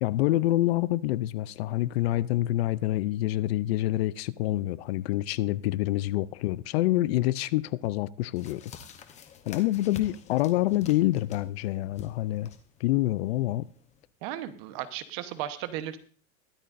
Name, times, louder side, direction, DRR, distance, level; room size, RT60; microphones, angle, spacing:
voice 1, 0.0-8.6 9.5-12.5 12.8-13.7, left 15 dB, 55° left, 0.5 m, -27 dB
sound 1, 8.4-14.1, left 7 dB, 20° left, 0.8 m, -48 dB
voice 2, 14.2-16.0, right 12 dB, 40° right, 1.0 m, -35 dB
22.5 x 8.5 x 2.6 m
supercardioid pair, 165°, 38 cm